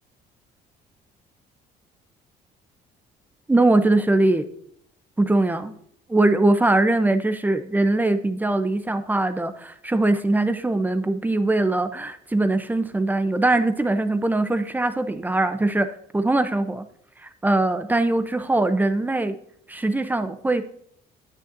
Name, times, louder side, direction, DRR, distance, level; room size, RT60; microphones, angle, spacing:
voice 1, 3.5-4.5 5.2-5.8 6.1-16.8 17.2-19.4 19.7-20.6, right 2 dB, 10° right, 10 dB, 0.6 m, -21 dB
9.7 x 8.8 x 2.6 m, 0.67 s
cardioid pair, 110°, 17 cm